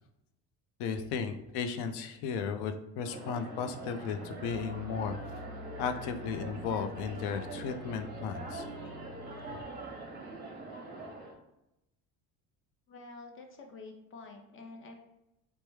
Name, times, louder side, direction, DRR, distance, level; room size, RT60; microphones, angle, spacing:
voice 1, 0.8-5.2 5.8-8.7, left 6 dB, 85° left, 7 dB, 0.5 m, -35 dB
sound 1, 3.0-11.3, right 2 dB, 25° right, 0.8 m, -43 dB
Piano, 4.5-9.6, left 3 dB, 10° right, 0.4 m, -48 dB
voice 2, 12.9-14.9, left 3 dB, 35° left, 3 dB, 0.6 m, -48 dB
3.2 x 2.1 x 3.1 m, 0.89 s
cardioid pair, 105°, 38 cm